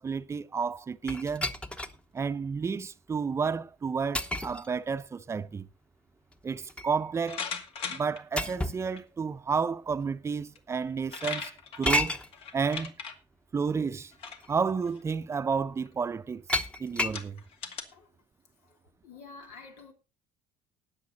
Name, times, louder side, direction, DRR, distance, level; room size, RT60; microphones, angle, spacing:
voice 1, 0.0-1.5 2.1-5.7 6.4-7.4 7.9-11.5 11.8-12.2 12.5-13.0 13.5-14.1 14.5-16.4 16.8-17.4, right 5 dB, 25° right, 0.6 m, -31 dB
sound 1, 1.1-2.0 2.6-2.7 4.2-4.7 6.3-7.0 8.4-8.9 9.9-10.0 11.9-12.3 13.7-13.8 14.3-14.5 16.5-17.3, left 1 dB, 10° left, 1.0 m, -31 dB
sound 2, 7.3-8.2 9.0-9.1 10.5-10.6 10.9-13.1 14.1-14.5 14.9-15.2 15.9-16.0 16.6-16.7 17.1-17.8, left 6 dB, 60° left, 2.1 m, -38 dB
voice 2, 18.6-19.9, left 4 dB, 90° left, 3.3 m, -49 dB
19.0 x 7.2 x 3.9 m
cardioid pair, 105°, 11 cm